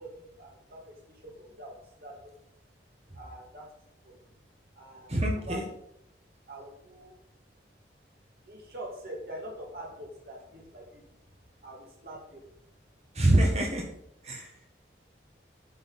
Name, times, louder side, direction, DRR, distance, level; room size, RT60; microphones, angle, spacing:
voice 1, 0.0-2.3 3.1-4.4 4.7-5.7 6.5-7.2 8.4-11.0 11.6-12.5, right 1 dB, 55° right, -3 dB, 2.7 m, -45 dB
voice 2, 5.1-5.6 13.1-13.9 14.2-14.5, right 1 dB, 35° right, 0 dB, 1.7 m, -25 dB
8.4 x 6.6 x 7.1 m, 0.76 s
head